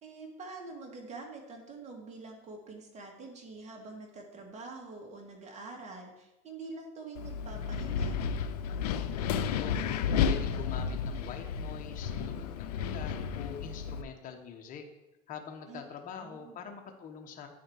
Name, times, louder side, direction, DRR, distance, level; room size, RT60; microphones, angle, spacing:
voice 1, 0.0-8.2 15.7-15.8 16.2-16.6, right 3 dB, 35° right, 1 dB, 1.9 m, -45 dB
Wind, 7.2-14.0, left 7 dB, 85° left, 0.5 m, -32 dB
voice 2, 9.3-9.8 10.3-14.8 15.3-17.5, left 7 dB, 40° left, 3 dB, 1.1 m, -44 dB
9.2 x 4.2 x 4.6 m, 1.0 s
supercardioid pair, 95°, 20 cm